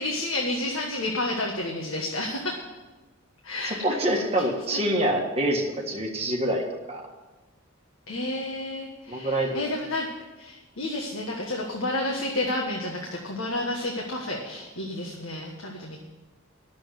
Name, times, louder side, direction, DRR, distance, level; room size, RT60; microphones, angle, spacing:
voice 1, 0.0-2.6 3.4-4.0 4.7-4.8 8.1-10.1 10.4-16.0, left 1 dB, 75° left, 0 dB, 1.5 m, -30 dB
voice 2, 3.7-7.0 9.1-9.6, right 1 dB, 30° right, 0 dB, 1.7 m, -26 dB
10.5 x 7.3 x 9.1 m, 1.2 s
head